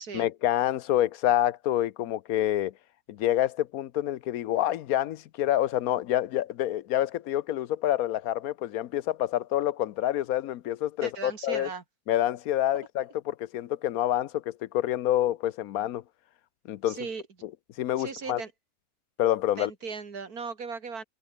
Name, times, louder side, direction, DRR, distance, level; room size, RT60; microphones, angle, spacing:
voice 1, 0.1-2.7 3.1-11.7 12.1-16.0 16.7-17.0 17.8-18.4 19.2-19.7, left 12 dB, 75° left, 1.1 m, -27 dB
voice 2, 11.0-11.8 16.9-17.2 18.0-18.5 19.6-21.0, right 5 dB, 90° right, 2.8 m, -37 dB
omnidirectional pair, 1.6 m